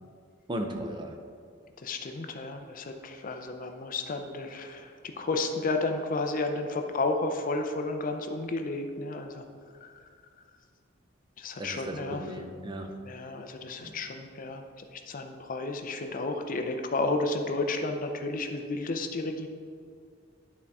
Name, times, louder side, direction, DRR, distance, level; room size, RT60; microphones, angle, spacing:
voice 1, 0.5-1.1 11.6-12.9 13.8-13.9, right 1 dB, 25° right, 3 dB, 0.6 m, -36 dB
voice 2, 1.8-9.4 9.8-9.9 11.4-12.4 13.0-19.5, left 2 dB, 45° left, 5 dB, 0.5 m, -32 dB
11.0 x 4.1 x 3.5 m, 2.2 s
head